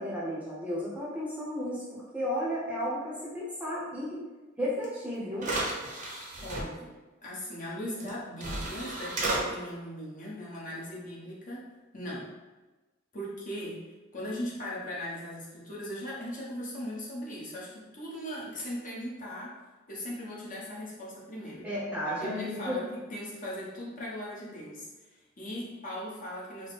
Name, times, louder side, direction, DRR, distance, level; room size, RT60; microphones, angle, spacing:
voice 1, 0.0-4.2 4.6-5.5 21.6-22.8, equal, 5° right, -7 dB, 0.8 m, -33 dB
sound 1, 4.8-4.9 5.4-6.6 8.0-8.1 8.4-9.4, right 2 dB, 45° right, 0.8 m, -33 dB
voice 2, 6.4-6.9 7.2-11.7 11.9-12.3 13.1-13.8 14.1-19.5 19.9-21.7 22.0-26.7, equal, 45° left, -6 dB, 1.1 m, -39 dB
3.9 x 2.1 x 4.0 m, 1.2 s
head